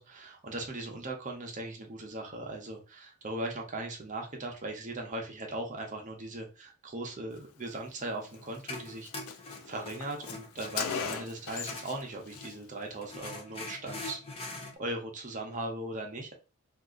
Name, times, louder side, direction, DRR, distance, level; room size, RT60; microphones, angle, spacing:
voice 1, 0.0-9.1 9.7-16.3, right 2 dB, 35° right, 2 dB, 0.7 m, -39 dB
Car, 8.3-8.5 8.8-8.9 9.0-12.0 12.3-12.5, left 7 dB, 80° left, 0.4 m, -38 dB
sound 1, 8.3-12.6 13.0-14.8, left 2 dB, 25° left, 0.6 m, -43 dB
2.7 x 2.4 x 3.6 m, 0.33 s
head